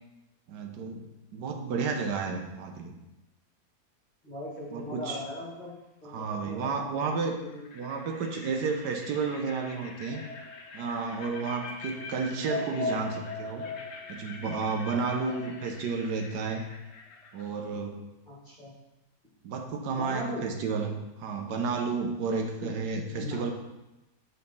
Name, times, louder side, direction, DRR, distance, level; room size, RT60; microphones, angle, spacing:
voice 1, 0.5-1.1 1.3-3.0 4.7-5.2 6.0-7.4 7.7-10.2 10.7-13.7 14.1-16.6 17.3-18.0 19.4-23.5, right 4 dB, 80° right, 3 dB, 1.4 m, -32 dB
voice 2, 4.2-5.7 6.0-7.7 18.3-18.7 19.9-20.4 22.6-22.7 23.2-23.4, left 1 dB, 30° left, -6 dB, 2.0 m, -39 dB
sound 1, 4.6-5.0 6.5-6.6 7.0-17.5, left 3 dB, 80° left, 1.5 m, -46 dB
sound 2, 10.1-15.7, left 2 dB, 60° left, 0.4 m, -38 dB
6.7 x 4.3 x 5.4 m, 0.98 s
omnidirectional pair, 1.8 m